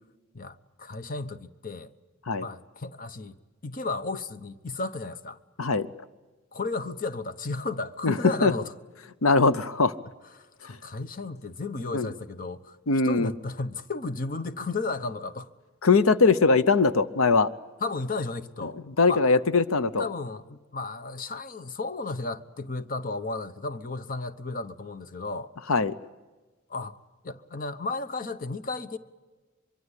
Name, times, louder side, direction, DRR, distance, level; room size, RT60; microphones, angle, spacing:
voice 1, 0.3-1.9 2.4-3.4 3.6-5.4 6.5-8.7 10.4-12.8 13.0-15.5 17.8-18.8 19.1-19.2 20.0-25.5 26.7-27.0 27.2-29.0, left 3 dB, 40° left, 1.0 m, -34 dB
voice 2, 8.0-8.5 9.2-10.0 11.9-12.1 12.9-13.3 15.8-17.5 18.6-18.7 19.0-20.1 25.7-25.9, left 4 dB, 90° left, 0.8 m, -21 dB
24.0 x 23.5 x 8.3 m
head